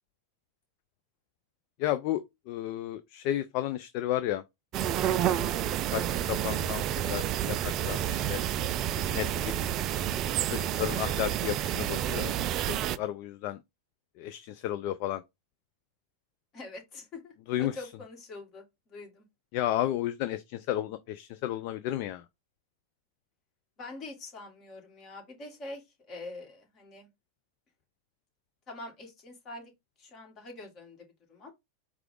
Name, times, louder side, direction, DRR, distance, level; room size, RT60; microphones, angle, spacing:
voice 1, 1.8-2.2 2.5-4.4 5.2-8.4 9.1-9.7 10.1-12.3 12.7-13.6 14.2-15.2 17.5-17.7 19.5-22.2, left 13 dB, 50° left, 0.4 m, -33 dB
sound 1, 4.7-13.0, right 10 dB, 40° right, 0.3 m, -29 dB
voice 2, 16.5-19.3 23.8-27.1 28.7-29.7 30.0-31.5, left 2 dB, 35° left, 1.9 m, -45 dB
4.5 x 2.4 x 3.7 m
figure-of-eight pair, 95°, 0 cm